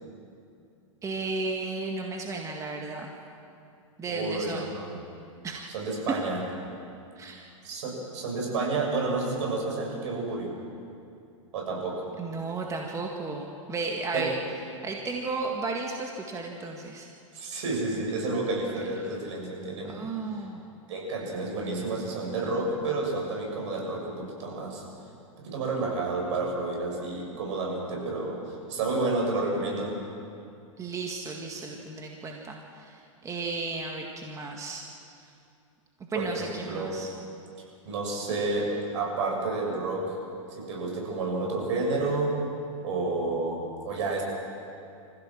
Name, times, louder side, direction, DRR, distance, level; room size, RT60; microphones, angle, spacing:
voice 1, 1.0-3.1 4.0-4.7 5.4-5.7 7.2-7.4 12.2-14.3 14.8-17.1 19.9-20.6 30.8-34.8 36.1-37.1, right 3 dB, 20° right, 1 dB, 1.9 m, -34 dB
voice 2, 4.1-5.0 5.7-6.4 7.6-10.5 11.5-12.0 14.1-14.4 17.3-20.1 20.9-24.8 25.4-29.9 36.1-37.0 37.9-40.1 40.5-42.4 42.8-44.2, right 3 dB, 65° right, -1 dB, 7.2 m, -30 dB
26.0 x 15.5 x 7.5 m, 2.6 s
hypercardioid pair, 120°, 17 cm